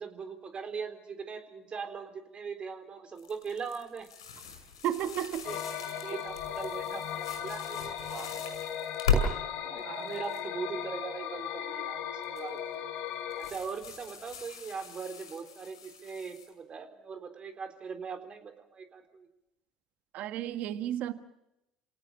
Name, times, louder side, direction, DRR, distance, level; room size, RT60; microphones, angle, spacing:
voice 1, 0.0-4.1 5.0-5.1 5.5-5.6 5.9-8.4 9.2-12.9 13.4-19.3, right 5 dB, 40° right, 6 dB, 3.9 m, -40 dB
sound 1, 3.2-9.3 9.8-10.4 12.2-12.6 13.3-16.5, left 4 dB, 90° left, 6.0 m, -37 dB
voice 2, 4.8-5.5 9.8-10.1 20.1-21.1, right 11 dB, 60° right, 10 dB, 1.4 m, -33 dB
sound 2, 5.4-13.5, left 9 dB, 65° left, 2.8 m, -37 dB
28.0 x 18.0 x 7.0 m, 0.86 s
hypercardioid pair, 65°, 3 cm